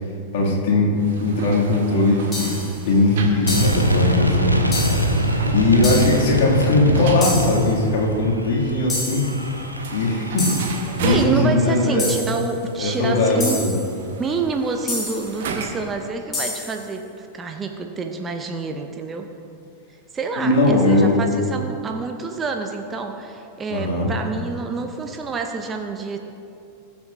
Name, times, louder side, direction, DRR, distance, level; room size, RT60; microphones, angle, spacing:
voice 1, 0.3-2.5 2.8-4.9 5.5-9.3 9.9-12.1 12.8-13.8 20.4-21.2 23.7-24.1, left 2 dB, 50° left, -3 dB, 2.4 m, -19 dB
sound 1, 1.0-16.0, right 4 dB, 55° right, 1.2 m, -34 dB
sound 2, 2.3-2.8 3.5-4.0 4.7-5.2 5.8-6.3 7.2-7.7 8.9-9.4 10.4-10.9 12.0-12.5 13.4-13.9 14.9-15.4 16.3-16.8, left 2 dB, 20° left, 2.7 m, -29 dB
sound 3, 3.4-11.1, right 1 dB, 90° right, 0.9 m, -23 dB
voice 2, 11.0-13.6 14.2-19.3 20.1-26.2, right 4 dB, 20° right, 5 dB, 0.7 m, -28 dB
20.5 x 7.2 x 2.6 m, 2.6 s
figure-of-eight pair, 90°, 0 cm